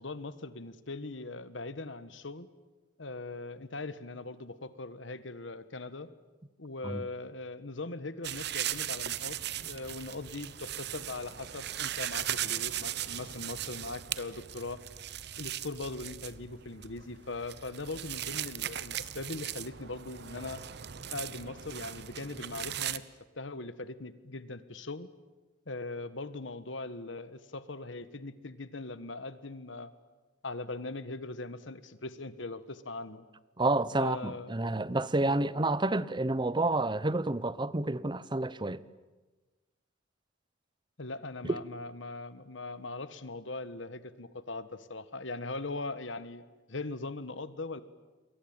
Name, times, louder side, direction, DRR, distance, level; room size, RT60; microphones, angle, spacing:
voice 1, 0.0-2.5 3.0-6.1 6.6-14.8 15.4-20.6 21.1-23.0 23.4-25.1 25.7-29.9 30.4-33.2 33.9-34.5 35.2-35.4 41.0-46.4 46.7-47.8, left 2 dB, 75° left, 1.4 m, -40 dB
sound 1, 8.2-23.0, right 11 dB, 60° right, 1.0 m, -38 dB
voice 2, 33.6-38.8, right 2 dB, 25° right, 0.8 m, -29 dB
28.0 x 23.0 x 8.9 m
head